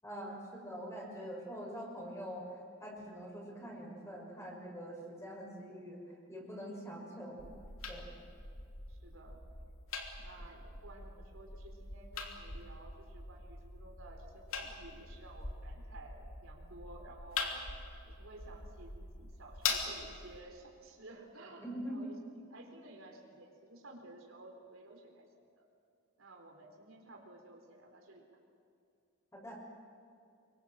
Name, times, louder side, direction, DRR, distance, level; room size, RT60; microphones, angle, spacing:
voice 1, 0.0-2.5 2.8-6.0 6.3-7.5 7.9-8.1 21.6-22.2 29.3-29.8, equal, 15° left, -1 dB, 6.2 m, -44 dB
sound 1, 7.4-20.4, left 4 dB, 80° left, 3.0 m, -43 dB
voice 2, 8.3-8.6 8.9-9.4 10.2-17.6 18.0-25.3 25.5-25.7 26.2-28.2, right 2 dB, 70° right, 2 dB, 4.0 m, -54 dB
26.0 x 23.5 x 7.5 m, 2.5 s
head